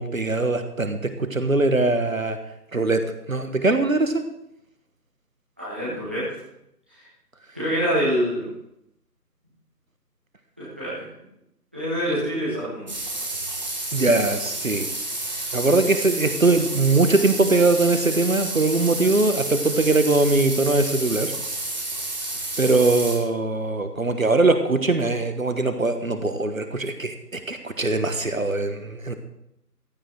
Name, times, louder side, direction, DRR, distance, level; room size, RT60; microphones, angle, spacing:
voice 1, 0.0-2.4 2.7-3.0 3.3-4.2 13.9-14.9 15.5-21.3 22.6-29.1, right 3 dB, 55° right, 8 dB, 1.4 m, -21 dB
voice 2, 5.6-6.2 6.9-7.0 7.5-8.5 10.6-11.0 11.7-12.9, equal, 5° right, -11 dB, 1.4 m, -26 dB
sound 1, 12.9-23.2, right 2 dB, 25° right, 2.1 m, -30 dB
15.5 x 11.5 x 4.6 m, 0.80 s
figure-of-eight pair, 165°, 49 cm